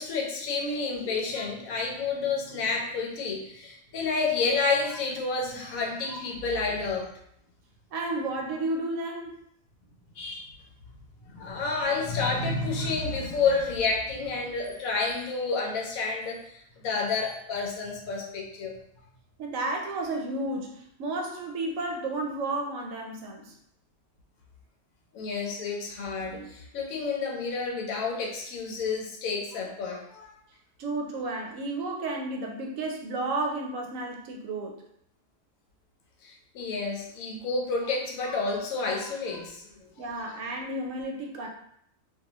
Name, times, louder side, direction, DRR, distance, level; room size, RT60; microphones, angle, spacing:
voice 1, 0.0-7.1 10.1-10.5 11.3-18.7 25.1-30.3 36.2-39.7, left 4 dB, 90° left, 0 dB, 1.1 m, -30 dB
voice 2, 7.9-9.4 19.4-23.5 30.8-34.8 40.0-41.5, right 2 dB, 75° right, 1 dB, 0.9 m, -32 dB
2.6 x 2.3 x 2.8 m, 0.71 s
omnidirectional pair, 1.4 m